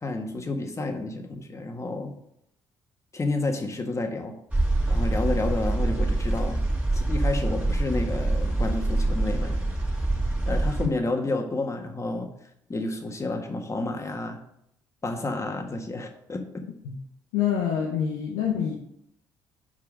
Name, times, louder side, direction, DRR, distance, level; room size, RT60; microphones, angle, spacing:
voice 1, 0.0-2.1 3.1-4.3 4.9-6.6 6.9-9.7 10.5-12.3 12.7-14.4 15.0-16.4, left 2 dB, 30° left, 4 dB, 1.6 m, -30 dB
sound 1, 4.5-10.9, right 2 dB, 10° right, 2.3 m, -25 dB
voice 2, 17.3-18.7, left 8 dB, 85° left, 0 dB, 0.9 m, -26 dB
5.5 x 5.2 x 6.2 m, 0.74 s
hypercardioid pair, 55°, 10 cm